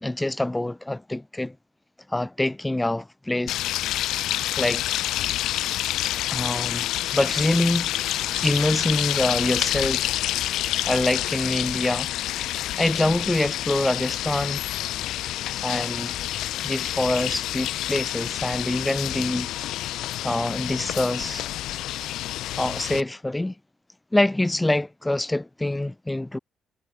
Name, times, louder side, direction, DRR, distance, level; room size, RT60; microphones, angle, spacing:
voice 1, 0.0-1.6 2.1-3.6 4.6-4.8 6.3-8.1 8.4-10.1 10.9-12.1 12.8-14.6 15.6-16.1 16.6-19.5 20.2-21.5 22.6-23.5 24.1-26.4, left 1 dB, 10° left, 0.7 m, -25 dB
sound 1, 3.5-23.0, left 14 dB, 85° left, 0.8 m, -28 dB
sound 2, 8.3-21.7, left 10 dB, 70° left, 5.4 m, -47 dB
cardioid pair, 90°, 0 cm